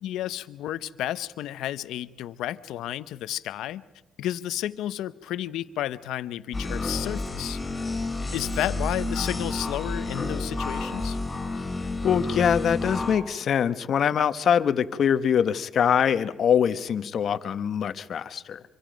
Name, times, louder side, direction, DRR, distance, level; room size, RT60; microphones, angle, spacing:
voice 1, 0.0-3.8 4.2-7.6 8.3-11.2, left 13 dB, 85° left, 15 dB, 0.7 m, -32 dB
sound 1, 6.5-13.2, left 2 dB, 20° left, 5.7 m, -30 dB
voice 2, 12.0-18.6, left 8 dB, 60° left, 12 dB, 1.0 m, -23 dB
26.0 x 24.0 x 5.2 m, 1.0 s
cardioid pair, 90°, 0 cm